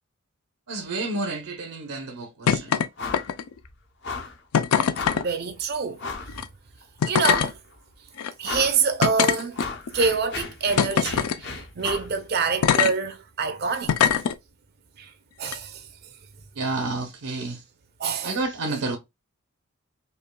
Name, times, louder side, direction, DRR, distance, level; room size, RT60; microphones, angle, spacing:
voice 1, 0.7-2.7 16.6-17.6 18.2-19.0, right 3 dB, 85° right, 0.8 m, -30 dB
sound 1, 2.5-2.9 3.1-3.6 4.5-5.2 6.3-6.4 7.0-7.5 8.2-8.3 9.0-9.9 10.8-11.4 12.6-12.9 13.9-14.3 15.4-15.6, left 7 dB, 90° left, 0.4 m, -22 dB
sound 2, 3.0-3.3 3.6-3.7 4.0-4.4 4.9-5.3 6.0-6.4 6.8-6.9 7.2-7.7 8.4-8.8 9.2-12.1, left 4 dB, 50° left, 0.7 m, -34 dB
voice 2, 5.2-6.0 7.1-7.6 8.4-9.6 9.9-14.1 15.0-15.1 15.4-15.9 18.0-18.4, right 5 dB, 45° right, 0.5 m, -26 dB
5.3 x 2.3 x 2.2 m
head